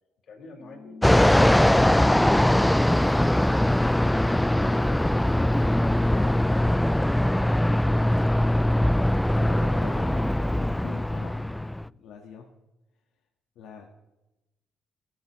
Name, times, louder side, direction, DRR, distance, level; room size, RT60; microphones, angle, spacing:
voice 1, 0.3-3.9 4.5-6.7, left 4 dB, 60° left, 0 dB, 5.3 m, -46 dB
sound 1, 0.6-11.5, left 3 dB, 40° left, 1.9 m, -48 dB
Fixed-wing aircraft airplane, 1.0-11.9, left 1 dB, 5° left, 0.4 m, -21 dB
voice 2, 8.4-8.8 9.2-12.4 13.5-13.9, left 7 dB, 85° left, 1 dB, 1.6 m, -45 dB
29.5 x 11.0 x 3.2 m, 1.0 s
cardioid pair, 90°, 0 cm